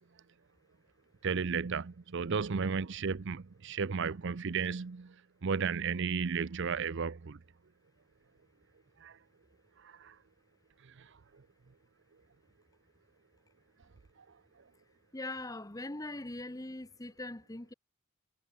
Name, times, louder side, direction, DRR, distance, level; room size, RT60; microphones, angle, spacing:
voice 1, 1.2-5.1 5.4-7.4 9.0-9.2 9.8-10.1, right 5 dB, 55° right, 0.6 m, -33 dB
voice 2, 15.1-17.7, left 2 dB, 15° left, 1.0 m, -41 dB
head